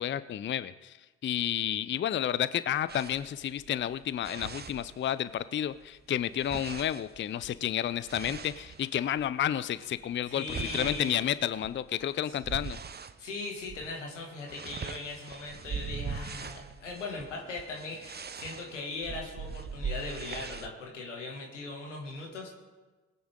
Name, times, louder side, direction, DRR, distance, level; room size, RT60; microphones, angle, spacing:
voice 1, 0.0-12.8, left 10 dB, 35° left, 15 dB, 0.5 m, -31 dB
sound 1, 2.9-5.4 5.7-9.3 9.9-13.2 13.6-13.9 14.2-20.7, right 6 dB, 30° right, 0.9 m, -41 dB
voice 2, 10.3-11.3 13.2-22.5, left 3 dB, 85° left, 0 dB, 2.2 m, -39 dB
sound 2, 10.6-11.8, right 1 dB, 80° right, 2.5 m, -49 dB
20.5 x 9.5 x 3.8 m, 1.2 s
figure-of-eight pair, 45°, 36 cm